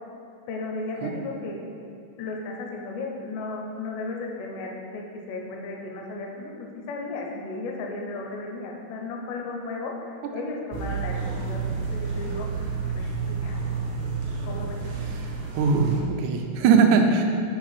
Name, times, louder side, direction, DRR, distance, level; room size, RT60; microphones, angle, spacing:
voice 1, 0.5-1.6 2.2-12.7 12.9-13.6 14.4-14.8, left 3 dB, 75° left, 0 dB, 2.2 m, -35 dB
sound 1, 10.7-16.0, right 5 dB, 70° right, 2.4 m, -30 dB
voice 2, 15.0-17.2, right 5 dB, 85° right, 3 dB, 1.6 m, -21 dB
5.1 x 4.5 x 5.6 m, 2.5 s
omnidirectional pair, 4.0 m